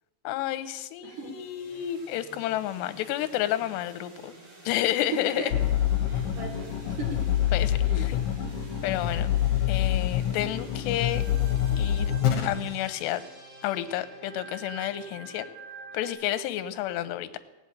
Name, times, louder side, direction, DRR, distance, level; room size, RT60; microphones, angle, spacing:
voice 1, 0.2-4.3 4.7-5.4 7.5-8.2 8.8-9.3 9.7-11.2 11.8-12.1 12.5-13.2 13.6-15.5 15.9-17.4, left 13 dB, 80° left, 11 dB, 2.8 m, -30 dB
voice 2, 1.0-1.4 5.0-5.8 6.1-7.4 7.8-8.1, right 3 dB, 65° right, 2 dB, 2.4 m, -37 dB
sound 1, 1.1-16.1, right 3 dB, 25° right, 5.9 m, -49 dB
sound 2, 5.5-12.5, left 10 dB, 60° left, 2.6 m, -26 dB
17.0 x 7.8 x 8.5 m, 1.2 s
omnidirectional pair, 5.2 m